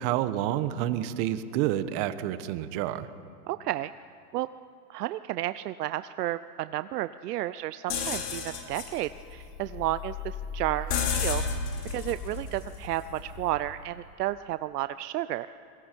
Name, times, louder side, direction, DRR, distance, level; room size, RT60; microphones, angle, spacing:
voice 1, 0.0-3.1, right 12 dB, 45° right, 12 dB, 1.2 m, -29 dB
voice 2, 3.5-3.9 4.3-4.5 4.9-11.4 11.9-15.5, right 15 dB, 70° right, 13 dB, 0.7 m, -32 dB
sound 1, 7.9-13.7, left 6 dB, 70° left, 3.2 m, -33 dB
28.5 x 22.0 x 4.6 m, 2.3 s
hypercardioid pair, 125°, 49 cm